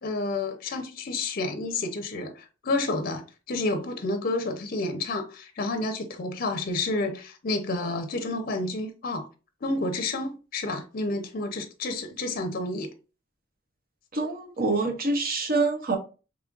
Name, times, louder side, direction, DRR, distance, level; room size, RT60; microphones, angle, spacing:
voice 1, 0.0-9.3 9.6-12.9, left 2 dB, 50° left, 0.6 m, -30 dB
voice 2, 14.1-16.0, right 3 dB, 50° right, 0.8 m, -26 dB
3.7 x 3.1 x 2.4 m
head